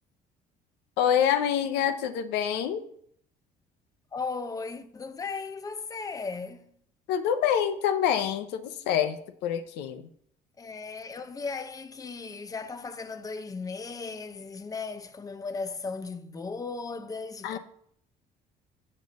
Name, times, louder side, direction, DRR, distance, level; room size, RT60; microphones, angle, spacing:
voice 1, 1.0-2.8 7.1-10.1 17.4-17.6, left 9 dB, 90° left, 0.8 m, -26 dB
voice 2, 4.1-6.7 10.6-17.6, left 4 dB, 20° left, 0.7 m, -36 dB
7.4 x 5.5 x 6.4 m
cardioid pair, 110°, 17 cm